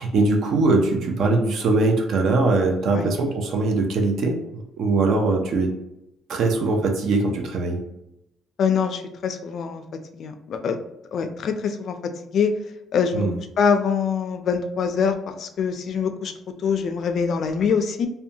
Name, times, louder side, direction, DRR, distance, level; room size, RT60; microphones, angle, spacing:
voice 1, 0.0-5.7 6.3-7.8 13.1-13.3, right 3 dB, 60° right, 3 dB, 0.4 m, -21 dB
voice 2, 8.6-9.8 10.2-10.8 11.1-12.0 12.3-12.6 12.9-13.3 13.6-16.3 16.6-18.1, left 6 dB, 50° left, 7 dB, 0.3 m, -24 dB
2.6 x 2.1 x 2.7 m, 0.86 s
cardioid pair, 150°, 0 cm